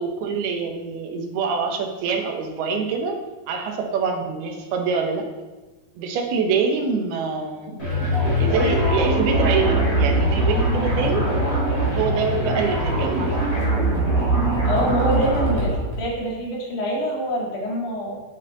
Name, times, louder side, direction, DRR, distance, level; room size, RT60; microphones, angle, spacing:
voice 1, 0.0-3.2 3.5-5.2 6.0-7.8 8.4-11.3 11.9-13.6, right 5 dB, 85° right, 3 dB, 3.0 m, -25 dB
sound 1, 7.8-16.0, right 1 dB, 15° left, 3.3 m, -21 dB
voice 2, 14.6-18.2, equal, 60° left, -3 dB, 3.1 m, -25 dB
10.0 x 7.3 x 4.0 m, 1.2 s
omnidirectional pair, 4.4 m